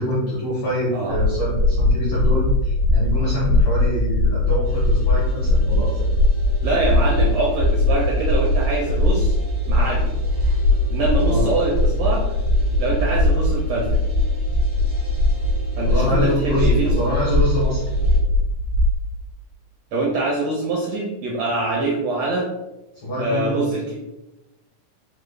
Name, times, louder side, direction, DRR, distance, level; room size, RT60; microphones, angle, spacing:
voice 1, 0.0-5.9 10.4-10.6 11.2-11.5 15.8-17.9 23.0-23.8, equal, 70° left, -7 dB, 1.1 m, -25 dB
sound 1, 1.1-19.0, left 1 dB, 90° left, 1.4 m, -20 dB
sound 2, 4.6-18.2, right 2 dB, 45° left, 0.5 m, -42 dB
voice 2, 6.6-9.4 9.7-10.2 10.9-12.2 12.8-14.0 15.8-17.0 19.9-22.5 23.2-23.9, right 2 dB, 80° right, -2 dB, 1.5 m, -24 dB
4.8 x 2.0 x 3.2 m, 0.99 s
omnidirectional pair, 3.6 m